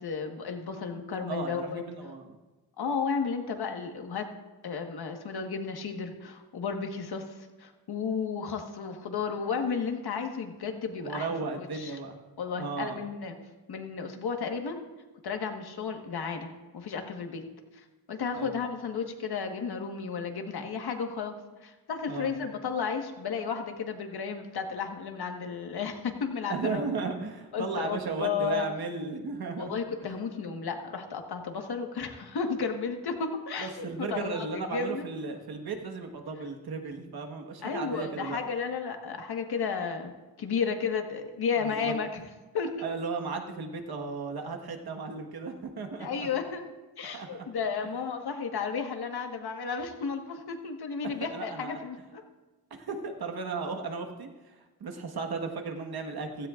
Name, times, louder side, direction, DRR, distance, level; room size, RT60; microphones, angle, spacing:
voice 1, 0.0-1.8 2.8-4.2 4.6-12.0 12.4-13.4 13.7-14.8 15.2-17.4 17.7-21.3 21.6-26.8 27.5-28.6 29.6-35.1 37.6-40.1 40.4-42.2 42.5-42.9 46.0-46.6 47.0-52.2, left 5 dB, 85° left, 4 dB, 1.6 m, -33 dB
voice 2, 1.3-2.3 11.0-12.2 12.5-13.0 18.3-18.6 22.1-22.3 26.5-29.8 33.6-38.4 41.6-41.9 42.8-46.3 47.1-47.5 47.8-47.9 51.2-51.8 52.7-56.5, right 4 dB, 75° right, 3 dB, 1.6 m, -35 dB
16.0 x 15.5 x 2.5 m, 1.2 s
wide cardioid pair, 150°, 37 cm